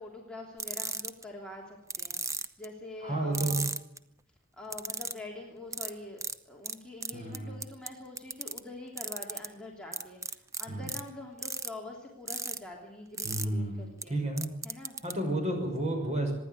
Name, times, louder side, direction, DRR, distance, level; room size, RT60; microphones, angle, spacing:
voice 1, 0.0-3.7 4.6-14.2 14.6-14.9, left 2 dB, 5° left, -2 dB, 3.1 m, -45 dB
sound 1, 0.6-1.2 1.9-2.7 3.3-4.0 4.7-5.2 5.7-5.9 6.2-6.3 6.6-6.7 7.0-7.9 8.2-8.6 9.0-9.5 9.9-11.0 11.4-11.7 12.3-12.6 13.2-13.5 14.0-14.1 14.4-15.1, right 4 dB, 15° right, 0.8 m, -35 dB
voice 2, 3.0-3.6 7.1-7.6 10.7-10.9 13.2-14.5 15.0-16.3, right 1 dB, 35° right, 3 dB, 6.3 m, -31 dB
25.0 x 11.0 x 9.5 m, 0.83 s
head